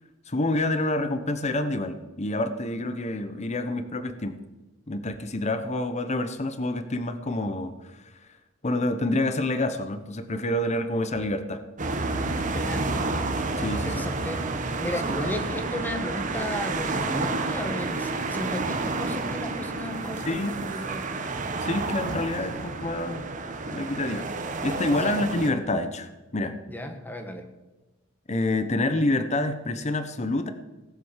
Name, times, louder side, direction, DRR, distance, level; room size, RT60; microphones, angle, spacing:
voice 1, 0.3-4.3 4.9-8.1 8.6-11.6 13.6-14.0 20.2-20.7 21.6-23.3 23.7-24.3 24.6-26.5 28.3-30.5, left 2 dB, 35° left, 9 dB, 0.9 m, -27 dB
sound 1, 11.8-25.5, right 3 dB, 40° right, 1.3 m, -30 dB
voice 2, 12.5-12.9 13.8-14.4 14.8-21.1 22.5-22.7 25.0-25.1 26.7-27.4, equal, 10° left, 5 dB, 1.6 m, -34 dB
18.0 x 7.7 x 7.3 m, 1.1 s
head